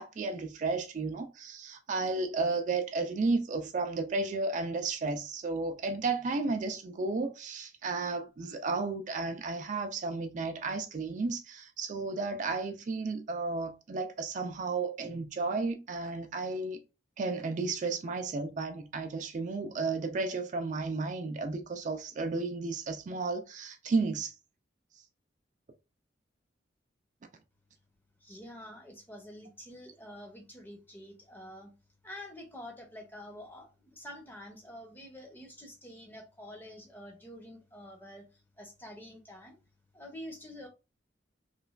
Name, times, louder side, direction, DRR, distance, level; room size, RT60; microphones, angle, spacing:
voice 1, 0.0-16.8 17.2-24.4, right 3 dB, 45° right, 0.3 m, -33 dB
voice 2, 28.2-31.7 32.0-38.2 38.6-39.6 39.9-40.7, left 1 dB, 10° left, 0.6 m, -47 dB
3.1 x 2.2 x 2.3 m
head